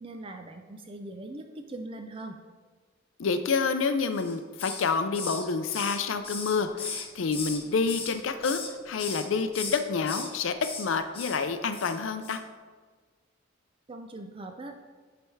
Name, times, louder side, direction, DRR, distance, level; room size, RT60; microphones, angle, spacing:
voice 1, 0.0-2.4 13.9-14.8, right 2 dB, 25° right, 5 dB, 0.4 m, -41 dB
voice 2, 3.2-12.4, left 5 dB, 75° left, 8 dB, 0.5 m, -28 dB
Hiss, 4.1-4.9 5.1-7.6 7.9-8.7 9.0-9.3 9.5-10.3 10.6-10.9 11.1-11.4 11.7-12.0 12.2-12.4, left 5 dB, 30° left, 0.9 m, -37 dB
9.7 x 3.4 x 4.6 m, 1.5 s
head